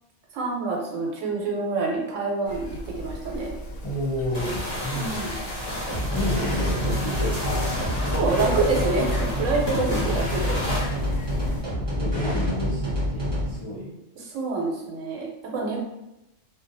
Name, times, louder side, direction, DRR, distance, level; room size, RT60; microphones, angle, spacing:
voice 1, 0.3-3.5 4.9-5.3 8.1-10.6 14.3-15.8, right 3 dB, 80° right, -1 dB, 1.0 m, -27 dB
sound 1, 2.4-11.6, equal, 75° left, 0.9 m, -37 dB
voice 2, 3.8-5.3 6.1-7.6 9.8-10.3 12.0-13.9, left 1 dB, 50° left, -9 dB, 0.3 m, -31 dB
sound 2, 4.3-10.9, left 1 dB, 35° left, 0.9 m, -32 dB
sound 3, 5.9-13.6, equal, 25° right, 0.8 m, -27 dB
2.4 x 2.2 x 2.6 m, 0.92 s
omnidirectional pair, 1.3 m